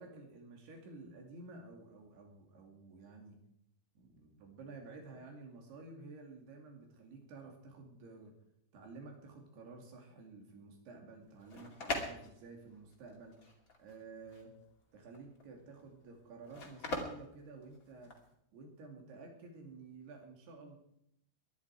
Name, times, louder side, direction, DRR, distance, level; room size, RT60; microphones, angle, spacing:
voice 1, 0.0-3.4 4.0-8.3 8.7-13.4 13.8-14.5 14.9-18.1 18.5-20.8, right 3 dB, 80° right, 2 dB, 4.7 m, -52 dB
sound 1, 11.2-18.3, left 2 dB, 25° left, 2.1 m, -43 dB
22.0 x 11.0 x 4.8 m, 0.76 s
omnidirectional pair, 4.7 m